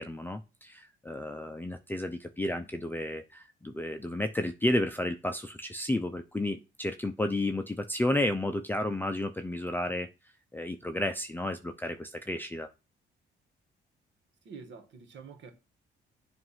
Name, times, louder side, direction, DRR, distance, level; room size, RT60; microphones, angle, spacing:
voice 1, 0.0-10.1 10.5-12.7, left 1 dB, 10° left, 0.5 m, -32 dB
voice 2, 14.4-15.5, right 5 dB, 70° right, 1.4 m, -47 dB
7.6 x 2.6 x 5.7 m
cardioid pair, 90°, 20 cm